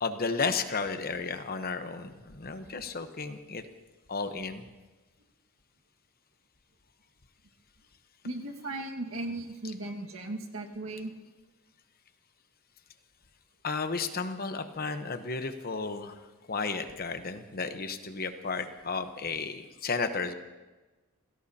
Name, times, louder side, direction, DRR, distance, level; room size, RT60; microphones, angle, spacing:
voice 1, 0.0-3.7 4.1-4.6 13.6-16.2 16.5-20.3, left 4 dB, 45° left, 8 dB, 1.0 m, -33 dB
voice 2, 8.2-11.1, right 2 dB, 75° right, 1 dB, 1.8 m, -37 dB
28.5 x 17.0 x 2.9 m, 1.2 s
head